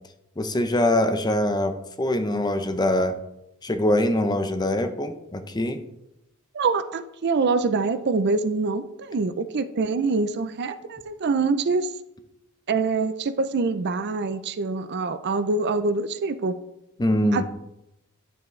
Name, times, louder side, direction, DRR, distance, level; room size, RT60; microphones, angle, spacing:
voice 1, 0.4-3.2 3.6-5.8 17.0-17.4, left 1 dB, 20° left, 9 dB, 0.6 m, -23 dB
voice 2, 6.5-11.9 12.7-16.5 17.3-17.4, right 4 dB, 50° right, 11 dB, 0.5 m, -25 dB
11.0 x 6.8 x 3.2 m, 0.88 s
head